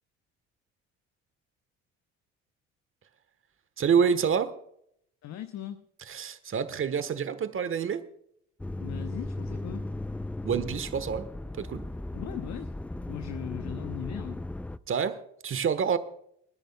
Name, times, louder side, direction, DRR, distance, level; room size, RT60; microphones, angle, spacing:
voice 1, 3.8-4.5 6.1-8.0 10.4-11.3 11.6-11.9 14.9-16.0, right 7 dB, 35° right, 1.3 m, -27 dB
voice 2, 5.2-5.8 8.8-9.9 12.1-14.5, left 10 dB, 50° left, 0.9 m, -39 dB
sound 1, 8.6-14.8, left 1 dB, 5° left, 0.4 m, -36 dB
29.5 x 10.5 x 2.3 m
hypercardioid pair, 50°, 35 cm